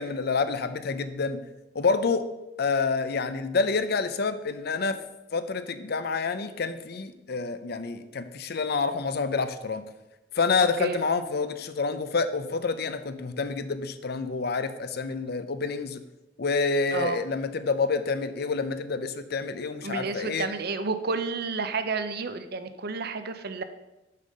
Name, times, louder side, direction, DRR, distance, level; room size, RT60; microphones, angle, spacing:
voice 1, 0.0-1.4 1.7-2.2 2.6-5.0 5.3-9.8 10.3-16.0 16.4-20.5, left 4 dB, 55° left, 11 dB, 0.6 m, -28 dB
voice 2, 19.8-23.6, right 4 dB, 55° right, 10 dB, 0.7 m, -31 dB
6.6 x 5.4 x 6.5 m, 0.98 s
head